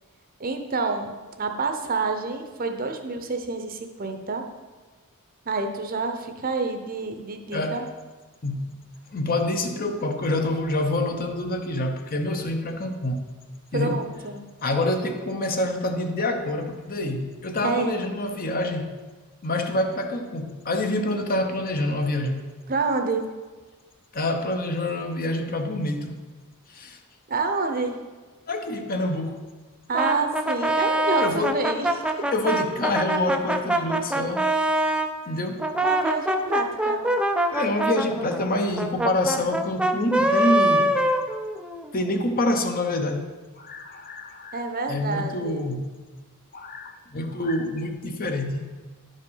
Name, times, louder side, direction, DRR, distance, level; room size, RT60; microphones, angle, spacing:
voice 1, 0.4-4.4 5.5-7.8 13.7-14.4 17.6-17.9 22.7-23.2 27.3-28.0 29.9-31.9 35.8-37.0 44.5-45.7, right 3 dB, 40° right, 5 dB, 0.8 m, -28 dB
voice 2, 7.5-7.8 8.4-8.7 9.1-13.2 13.7-14.0 14.6-18.9 19.4-22.4 24.1-26.1 26.7-27.0 28.5-29.4 31.2-31.7 32.3-34.5 35.3-35.7 37.5-40.9 41.9-43.3 43.6-44.6 44.9-45.9 46.5-48.7, left 1 dB, 40° left, 5 dB, 0.8 m, -27 dB
Brass instrument, 29.9-35.1 35.6-41.9, right 1 dB, 5° right, 0.4 m, -24 dB
10.5 x 5.2 x 5.6 m, 1.3 s
head